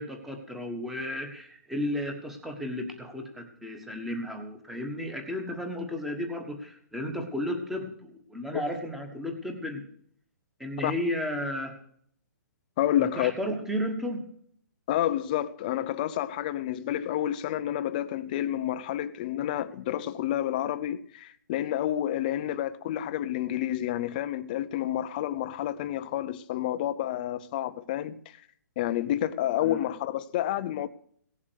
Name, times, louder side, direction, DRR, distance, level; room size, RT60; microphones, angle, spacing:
voice 1, 0.0-9.8 10.6-11.7 13.0-14.3 29.6-29.9, left 1 dB, ahead, 1.4 m, -33 dB
voice 2, 12.8-13.3 14.9-28.4 28.8-30.9, left 12 dB, 25° left, 0.5 m, -29 dB
17.5 x 7.4 x 6.4 m
hypercardioid pair, 170°, 10 cm